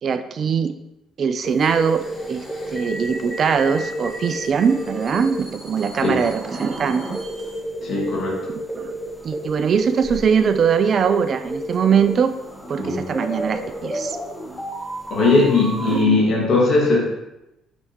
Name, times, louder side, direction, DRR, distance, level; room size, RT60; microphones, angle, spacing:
voice 1, 0.0-0.7 1.2-2.4 2.7-7.2 8.8-8.9 9.2-12.4 12.7-14.2 15.8-16.2, right 6 dB, 50° right, 11 dB, 0.4 m, -21 dB
sound 1, 1.4-16.0, right 1 dB, 15° left, 1.6 m, -31 dB
voice 2, 7.8-8.5 12.8-13.2 15.1-17.0, left 3 dB, 55° left, -3 dB, 2.1 m, -19 dB
6.2 x 5.2 x 3.0 m, 0.92 s
hypercardioid pair, 50°, 0 cm